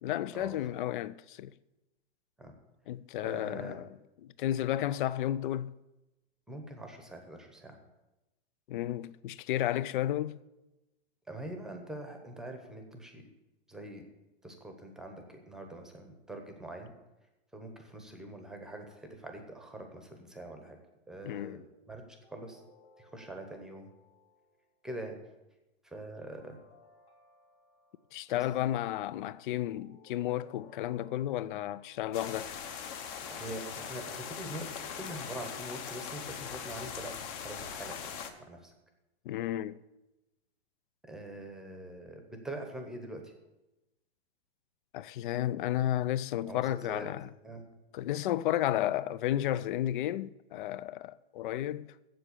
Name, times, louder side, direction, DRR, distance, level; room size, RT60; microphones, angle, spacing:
voice 1, 0.0-1.5 2.9-3.9 4.4-5.7 8.7-10.4 21.3-21.6 28.1-32.5 39.3-39.8 44.9-47.3 47.9-51.9, left 12 dB, 50° left, 0.4 m, -32 dB
voice 2, 3.2-3.8 6.5-7.8 11.3-13.3 13.7-14.0 14.4-16.9 17.5-20.8 21.1-22.6 23.0-23.9 24.8-25.2 25.8-26.6 28.3-28.5 33.3-38.1 38.4-38.7 41.0-43.3 46.4-47.1 47.4-47.6, right 1 dB, ahead, 0.9 m, -44 dB
sound 1, 22.2-24.7 26.4-28.2 29.6-32.3 33.7-38.2, left 4 dB, 80° left, 2.6 m, -60 dB
sound 2, 32.1-38.3, left 7 dB, 30° left, 0.8 m, -41 dB
7.7 x 7.6 x 8.2 m
hypercardioid pair, 155°, 33 cm